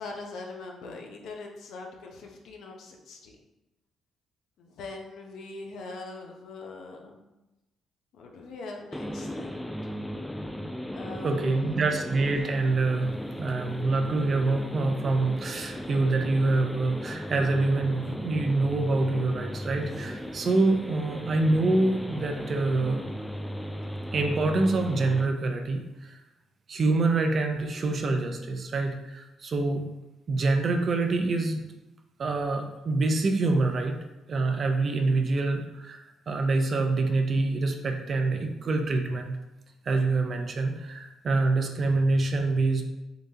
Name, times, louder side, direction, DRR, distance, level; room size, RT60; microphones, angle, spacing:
voice 1, 0.0-3.4 4.6-7.2 8.1-9.6 10.9-11.9, left 3 dB, 80° left, 1 dB, 0.7 m, -42 dB
sound 1, 8.9-25.3, equal, 5° left, 0.4 m, -37 dB
voice 2, 11.2-23.0 24.1-26.2 26.7-29.9 30.3-31.6 32.2-34.0 34.3-39.4 39.9-42.8, right 3 dB, 50° right, 4 dB, 0.6 m, -26 dB
6.7 x 2.3 x 2.8 m, 1.0 s
cardioid pair, 90°, 0 cm